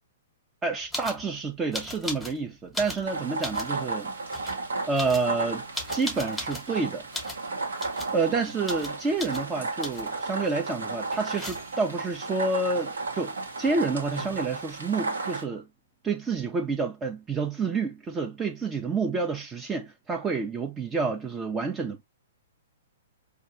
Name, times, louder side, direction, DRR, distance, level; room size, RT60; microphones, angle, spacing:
voice 1, 0.6-4.1 4.9-5.6 5.9-7.1 8.1-15.7 16.0-22.0, right 4 dB, 20° right, 0.6 m, -29 dB
sound 1, 0.9-1.2 1.7-2.4 2.7-3.7 4.3-4.6 4.9-6.7 7.1-7.4 7.8-8.2 8.6-8.9 9.2-9.4 9.8-10.2 11.1-11.9 13.7-13.8 13.9-14.5, left 1 dB, ahead, 1.1 m, -37 dB
sound 2, 3.1-15.4, right 3 dB, 80° right, 1.1 m, -34 dB
4.5 x 2.4 x 2.7 m
hypercardioid pair, 120°, 0 cm